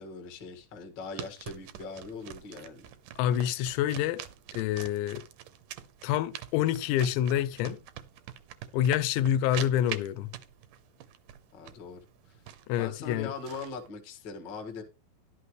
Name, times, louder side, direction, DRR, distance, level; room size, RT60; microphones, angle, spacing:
voice 1, 0.0-2.9 11.5-12.0 12.3-12.4 12.8-14.8, left 4 dB, 50° left, 1.3 m, -41 dB
sound 1, 1.2-13.9, right 11 dB, 80° right, 1.9 m, -45 dB
voice 2, 3.2-4.2 4.5-5.2 6.0-7.8 8.7-10.3 12.7-13.3, left 11 dB, 90° left, 3.0 m, -27 dB
11.5 x 11.5 x 3.1 m
omnidirectional pair, 5.0 m